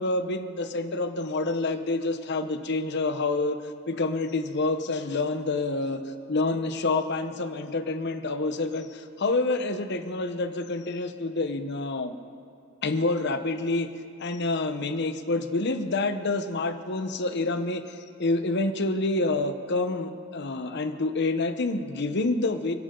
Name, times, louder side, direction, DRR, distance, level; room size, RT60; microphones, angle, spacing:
voice 1, 0.0-3.6 3.9-12.2 12.8-13.9 14.2-22.8, left 2 dB, 55° left, 8 dB, 0.9 m, -28 dB
29.0 x 10.5 x 3.9 m, 2.4 s
head